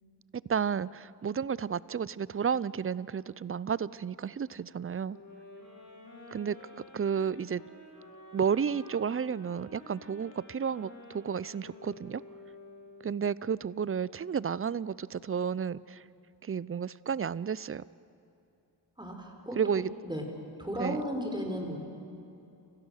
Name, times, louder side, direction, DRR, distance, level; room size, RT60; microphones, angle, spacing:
voice 1, 0.5-5.2 6.3-6.6 6.9-7.6 8.3-12.2 13.0-16.0 16.4-17.8 19.6-19.9 20.8-21.0, right 7 dB, 30° right, 21 dB, 0.5 m, -32 dB
sound 1, 5.1-13.3, left 2 dB, 40° left, 7.4 m, -51 dB
voice 2, 19.0-19.6 20.0-20.2 20.6-21.8, equal, 10° right, 2 dB, 5.1 m, -34 dB
29.5 x 15.5 x 6.5 m, 2.7 s
cardioid pair, 50°, 45 cm